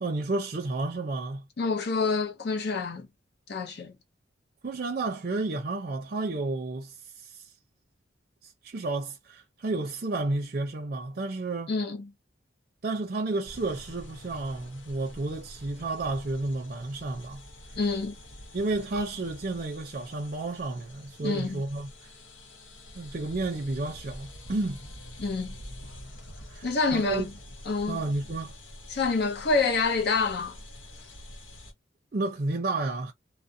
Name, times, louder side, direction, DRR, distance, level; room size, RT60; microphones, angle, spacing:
voice 1, 0.0-1.5 4.6-7.5 8.4-11.7 12.8-17.4 18.5-22.1 22.9-24.8 26.5-27.3 27.9-28.5 32.1-33.1, right 2 dB, 45° right, 0.5 m, -31 dB
voice 2, 1.6-3.1 3.5-4.0 11.7-12.1 17.8-18.1 21.2-21.6 25.2-25.6 26.6-27.3 27.7-28.0 28.9-30.6, left 4 dB, 60° left, 0.6 m, -27 dB
sound 1, 13.4-31.7, left 1 dB, 90° left, 0.9 m, -47 dB
2.4 x 2.0 x 2.6 m
head